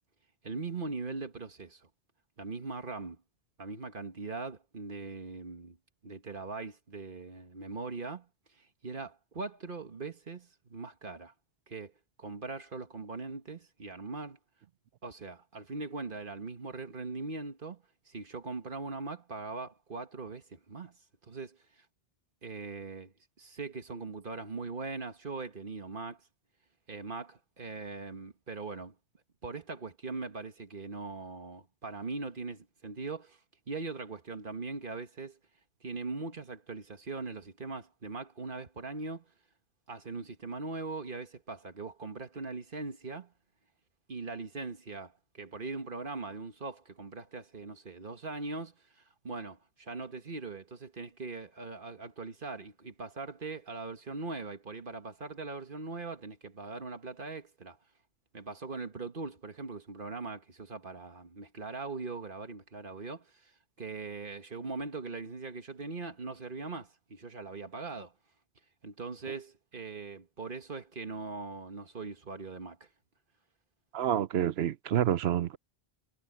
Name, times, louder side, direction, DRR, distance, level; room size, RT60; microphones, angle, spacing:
voice 1, 0.4-1.8 2.4-3.2 3.6-5.8 6.0-8.3 8.6-11.3 11.7-11.9 12.2-14.4 15.0-21.0 21.2-21.9 22.4-26.2 26.9-29.0 29.4-33.4 33.7-35.4 35.8-39.3 39.9-43.3 44.1-57.8 58.3-63.5 63.8-68.1 68.8-72.9, right 3 dB, 55° right, 1.7 m, -41 dB
voice 2, 73.9-75.6, right 10 dB, 85° right, 0.9 m, -28 dB
omnidirectional pair, 1.0 m